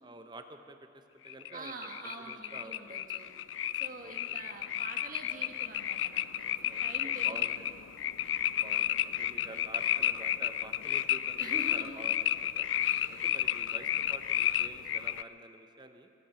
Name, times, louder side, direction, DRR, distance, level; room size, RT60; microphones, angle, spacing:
voice 1, 0.0-1.9 2.2-3.0 4.0-4.4 6.6-7.7 8.6-12.7 13.2-16.1, right 2 dB, 25° right, 7 dB, 0.8 m, -49 dB
sound 1, 1.3-15.2, left 11 dB, 85° left, 0.4 m, -32 dB
voice 2, 1.5-3.3 3.7-7.6 11.4-12.0 12.8-13.1, right 2 dB, 45° right, 3 dB, 1.5 m, -46 dB
24.0 x 8.6 x 6.9 m, 2.6 s
head